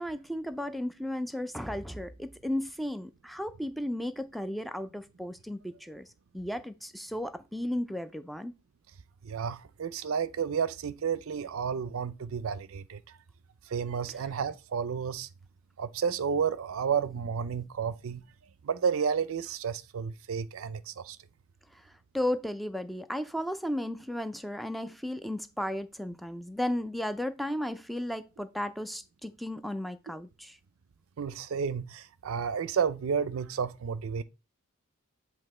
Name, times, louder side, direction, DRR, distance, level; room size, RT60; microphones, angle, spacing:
voice 1, 0.0-6.1 6.3-8.5 21.7-30.6, left 1 dB, ahead, 0.4 m, -34 dB
voice 2, 9.2-13.0 13.7-15.3 15.8-18.2 18.6-21.2 31.2-34.2, right 6 dB, 65° right, 0.4 m, -31 dB
7.9 x 2.8 x 4.2 m
head